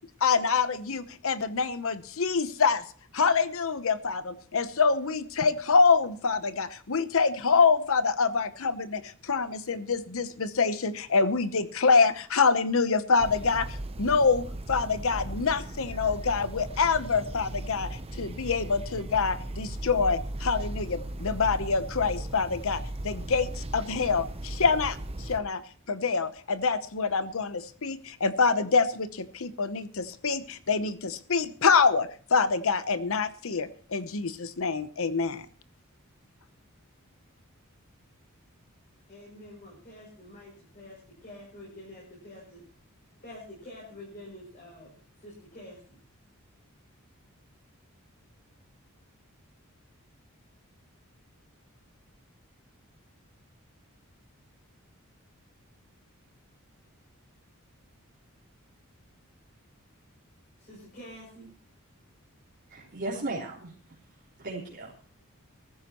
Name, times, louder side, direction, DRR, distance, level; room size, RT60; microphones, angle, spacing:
voice 1, 0.2-2.8 3.1-25.6 25.9-35.5, left 5 dB, 70° left, 13 dB, 0.9 m, -26 dB
sound 1, 13.2-25.4, right 1 dB, 30° right, 0.9 m, -37 dB
voice 2, 39.1-42.6 43.2-44.9 45.2-46.0 60.6-61.5, left 1 dB, 40° left, -4 dB, 6.8 m, -47 dB
voice 3, 62.7-63.7 64.4-64.9, right 2 dB, 50° right, -6 dB, 3.7 m, -35 dB
20.0 x 14.5 x 3.1 m, 0.42 s
head